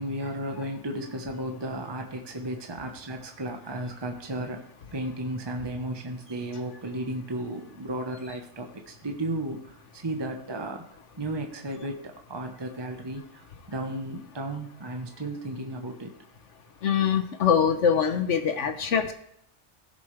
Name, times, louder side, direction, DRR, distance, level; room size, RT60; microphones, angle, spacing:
voice 1, 0.0-4.6 4.9-10.8 11.2-16.1, right 1 dB, 20° right, 3 dB, 1.1 m, -34 dB
voice 2, 16.8-19.1, left 7 dB, 75° left, 8 dB, 1.2 m, -23 dB
16.5 x 7.1 x 3.3 m, 0.72 s
omnidirectional pair, 1.3 m